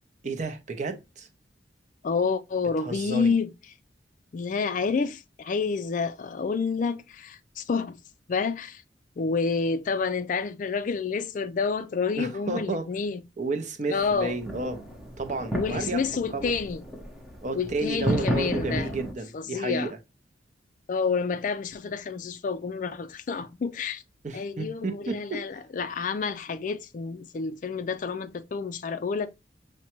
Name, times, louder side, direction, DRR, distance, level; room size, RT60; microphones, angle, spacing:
voice 1, 0.2-1.3 2.8-3.4 12.2-12.9 13.4-14.8 15.2-16.0 16.3-16.5 17.4-20.0 24.2-25.5, right 3 dB, 40° right, 0.6 m, -32 dB
voice 2, 2.0-3.5 4.3-8.0 8.3-8.8 9.2-13.2 13.9-14.4 15.5-16.8 17.5-18.9 19.3-19.9 20.9-24.0 24.3-29.3, left 5 dB, 45° left, 0.3 m, -29 dB
sound 1, 14.0-19.1, equal, ahead, 0.7 m, -32 dB
6.0 x 2.2 x 2.9 m
head